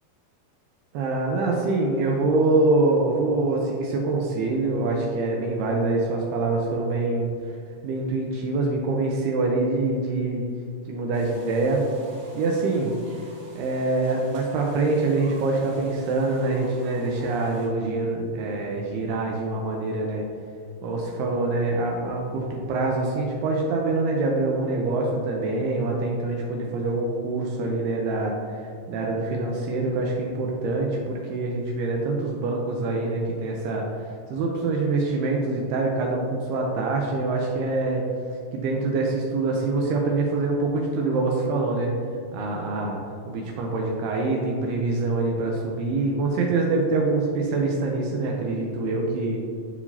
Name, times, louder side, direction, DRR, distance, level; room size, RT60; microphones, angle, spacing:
voice 1, 0.9-7.6 7.8-10.5 10.9-11.8 12.4-13.0 13.6-20.3 20.8-38.1 38.5-41.9 42.3-43.0 43.3-49.4, right 3 dB, 85° right, -1 dB, 2.3 m, -25 dB
sound 1, 11.1-17.7, right 1 dB, 55° right, 2.6 m, -49 dB
12.0 x 4.7 x 2.8 m, 2.3 s
omnidirectional pair, 5.3 m